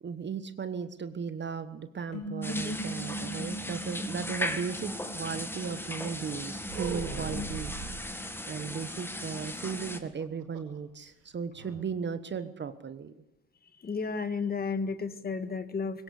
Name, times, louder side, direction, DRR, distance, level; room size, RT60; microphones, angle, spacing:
voice 1, 0.0-13.1, right 6 dB, 25° right, 11 dB, 1.2 m, -36 dB
sound 1, 2.1-5.4, right 2 dB, 55° left, 7.1 m, -41 dB
voice 2, 2.4-2.9 7.3-7.5 13.8-16.0, left 4 dB, 25° left, 10 dB, 1.8 m, -33 dB
sound 2, 2.4-10.0, left 1 dB, 5° left, 2.0 m, -37 dB
sound 3, 6.7-8.1 9.8-10.8 11.1-11.2 11.5-11.8, right 6 dB, 85° right, 5.5 m, -39 dB
22.0 x 18.5 x 8.4 m, 0.90 s
supercardioid pair, 100°, 40 cm